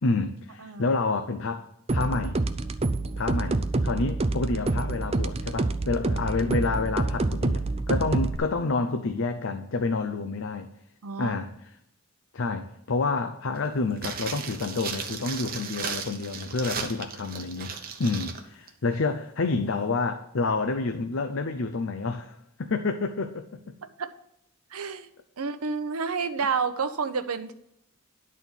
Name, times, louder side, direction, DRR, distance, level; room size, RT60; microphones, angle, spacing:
voice 1, 0.0-2.4 3.2-10.7 11.2-11.7 12.3-23.8, left 3 dB, 60° left, 7 dB, 0.6 m, -29 dB
voice 2, 0.6-0.9 11.0-11.3 24.0-24.1 24.7-25.1 25.4-27.5, right 5 dB, 90° right, 10 dB, 0.7 m, -29 dB
sound 1, 1.9-8.4, right 2 dB, 30° right, 0.4 m, -27 dB
sound 2, 14.0-18.4 18.7-18.8, right 6 dB, 45° right, 0.9 m, -36 dB
10.5 x 4.2 x 7.1 m, 0.76 s
head